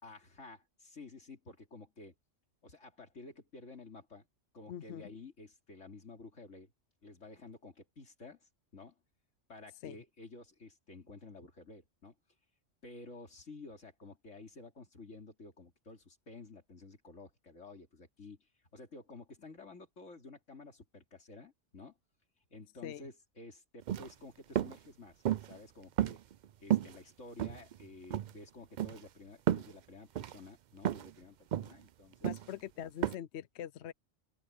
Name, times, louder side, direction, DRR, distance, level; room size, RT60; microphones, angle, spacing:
voice 1, 0.0-2.1 2.6-4.3 4.5-6.7 7.0-9.0 9.5-12.2 12.8-22.0 22.5-26.2 26.6-32.3, left 3 dB, 90° left, 3.2 m, -52 dB
voice 2, 4.7-5.1 9.8-10.0 22.8-23.0 32.2-33.9, left 10 dB, 70° left, 0.8 m, -43 dB
sound 1, 23.8-24.1 24.6-24.8 25.2-25.6 26.0-26.4 26.7-27.0 27.4-27.8 28.1-28.3 28.8-29.0 29.5-29.7 30.2-30.4 30.8-31.1 31.5-31.8 32.2-32.5 33.0-33.1, right 11 dB, 60° right, 0.4 m, -32 dB
open air
omnidirectional pair, 1.2 m